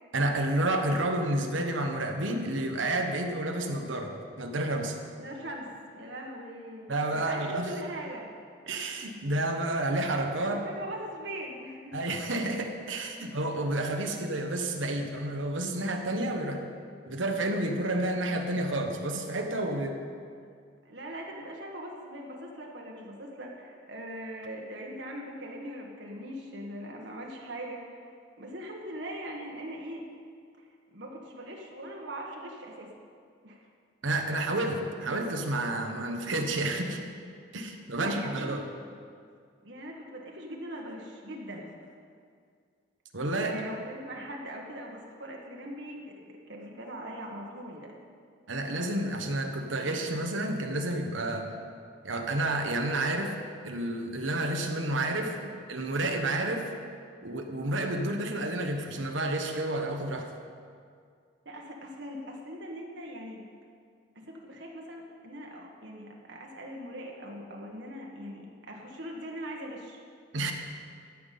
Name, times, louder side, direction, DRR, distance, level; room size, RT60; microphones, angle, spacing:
voice 1, 0.1-4.1 4.4-4.9 6.9-7.7 8.7-10.6 11.9-16.7 17.1-20.0 34.0-37.0 37.5-38.6 43.1-43.5 48.5-51.5 52.0-53.3 53.6-55.4 55.7-56.7 57.2-60.3 70.3-70.5, right 1 dB, 80° right, 4 dB, 1.2 m, -30 dB
voice 2, 5.2-8.3 10.5-12.0 13.2-13.3 19.6-19.8 20.8-28.1 28.4-30.1 30.9-32.9 33.4-33.6 37.9-38.6 39.6-41.7 43.4-48.1 55.4-55.5 61.4-63.5 64.1-70.0, equal, 65° right, -1 dB, 1.4 m, -41 dB
13.0 x 6.0 x 8.4 m, 2.2 s
head